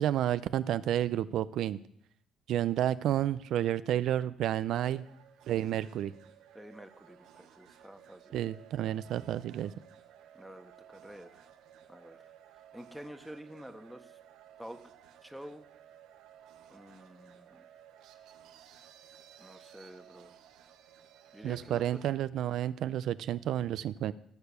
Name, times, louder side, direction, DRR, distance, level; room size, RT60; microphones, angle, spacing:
voice 1, 0.0-1.8 2.5-5.0 5.5-6.1 8.3-9.7 21.4-24.1, right 11 dB, 70° right, 14 dB, 0.4 m, -30 dB
sound 1, 4.7-22.1, right 10 dB, 85° right, 1.3 m, -57 dB
voice 2, 6.5-8.3 10.3-11.4 11.9-12.2 12.7-14.2 14.6-14.8 15.2-15.6 16.7-17.7 19.4-20.3 21.3-22.0, equal, ahead, 6 dB, 1.2 m, -48 dB
16.5 x 6.8 x 6.9 m, 0.70 s
cardioid pair, 110°, 0 cm